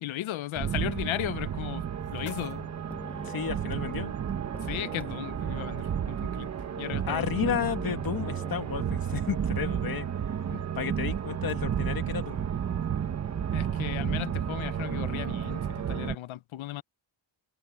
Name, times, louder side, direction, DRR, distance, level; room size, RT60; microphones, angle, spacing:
voice 1, 0.0-1.9 2.1-2.7 4.6-6.5 6.8-7.5 10.5-10.7 13.5-16.8, left 14 dB, 85° left, 0.8 m, -36 dB
sound 1, 0.6-16.2, right 8 dB, 35° right, 0.8 m, -32 dB
sound 2, 1.5-3.5, left 9 dB, 65° left, 4.8 m, -53 dB
sound 3, 1.9-9.0 11.5-11.6 12.9-15.8, left 1 dB, 5° left, 1.2 m, -49 dB
voice 2, 3.2-4.1 7.1-10.1 10.8-12.5, left 8 dB, 50° left, 1.9 m, -32 dB
wide cardioid pair, 160°, 46 cm